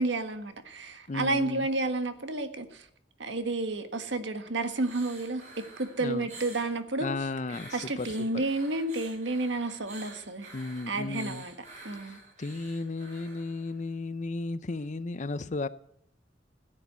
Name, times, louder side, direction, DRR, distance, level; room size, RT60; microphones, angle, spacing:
voice 1, 0.0-2.9 3.2-7.1 7.7-10.5 10.9-11.5 11.8-12.2, right 2 dB, 70° right, 8 dB, 1.6 m, -31 dB
voice 2, 1.1-1.7 6.0-6.3 7.0-8.4 10.5-11.4 12.0-15.7, left 3 dB, 40° left, 15 dB, 0.6 m, -34 dB
sound 1, 4.6-6.7 7.4-13.8 14.8-14.9, right 3 dB, 40° right, 7.3 m, -49 dB
15.5 x 9.8 x 8.1 m, 0.68 s
head